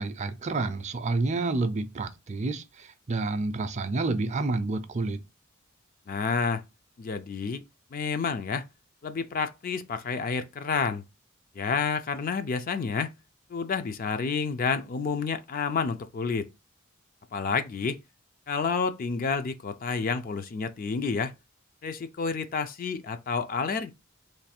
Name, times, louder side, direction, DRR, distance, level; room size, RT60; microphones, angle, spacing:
voice 1, 0.0-5.2, right 3 dB, 35° right, 0.4 m, -29 dB
voice 2, 6.1-6.6 7.0-7.6 7.9-8.6 9.0-11.0 11.6-13.1 13.5-16.5 17.3-18.0 18.5-21.3 21.8-23.9, left 5 dB, 40° left, 0.4 m, -29 dB
3.2 x 2.3 x 4.2 m
head